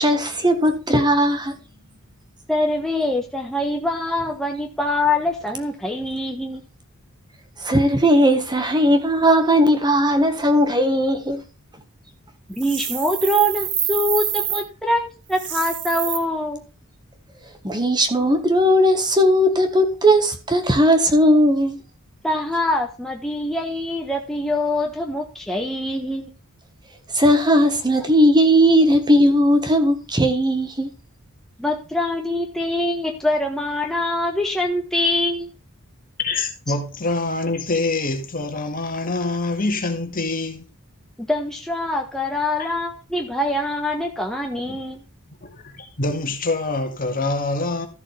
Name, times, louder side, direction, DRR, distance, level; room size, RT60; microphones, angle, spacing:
voice 1, 0.0-1.6 7.6-11.4 17.6-21.8 27.1-30.9, equal, 20° right, 1.5 m, -17 dB
voice 2, 2.5-6.6 12.5-16.6 22.2-26.3 31.6-35.5 41.2-45.0, left 1 dB, ahead, 1.3 m, -24 dB
sound 1, 12.6-14.6 15.3-16.2, right 9 dB, 55° right, 1.7 m, -26 dB
voice 3, 36.2-40.7 42.6-42.7 44.7-44.8 45.4-47.9, left 2 dB, 40° left, 1.9 m, -25 dB
13.5 x 7.5 x 3.4 m
head